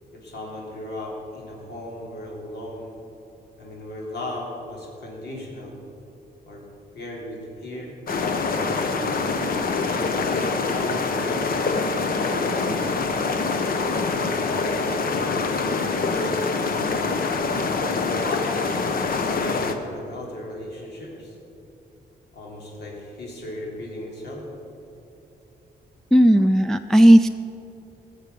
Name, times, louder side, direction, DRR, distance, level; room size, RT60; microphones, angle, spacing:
voice 1, 0.1-3.0 3.6-5.7 6.5-6.6 6.9-7.9 8.6-9.1 9.9-13.7 14.8-17.1 17.8-21.4 22.3-24.4, left 1 dB, 80° left, -3 dB, 3.6 m, -36 dB
sound 1, 8.1-19.7, left 4 dB, 55° left, 1.0 m, -25 dB
voice 2, 26.1-27.3, right 1 dB, 5° left, 6 dB, 0.3 m, -14 dB
19.0 x 7.4 x 6.9 m, 2.9 s
wide cardioid pair, 140°, 18 cm